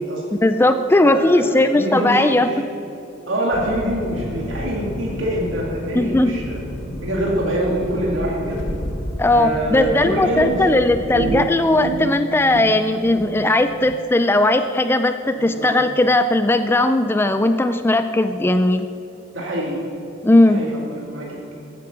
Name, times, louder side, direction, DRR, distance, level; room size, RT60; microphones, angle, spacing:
voice 1, 0.4-2.5 5.9-6.3 9.2-18.9 20.2-20.6, left 1 dB, 10° left, 9 dB, 0.3 m, -17 dB
voice 2, 1.0-2.6 3.3-6.6 7.0-8.6 9.3-10.7 15.3-15.7 19.3-19.8 20.5-20.8 21.1-21.5, equal, 70° right, -3 dB, 2.2 m, -25 dB
sound 1, 3.5-11.1, equal, 85° left, 1.4 m, -31 dB
sound 2, 11.1-14.0, right 4 dB, 90° right, 0.5 m, -29 dB
14.5 x 8.8 x 6.0 m, 2.8 s
head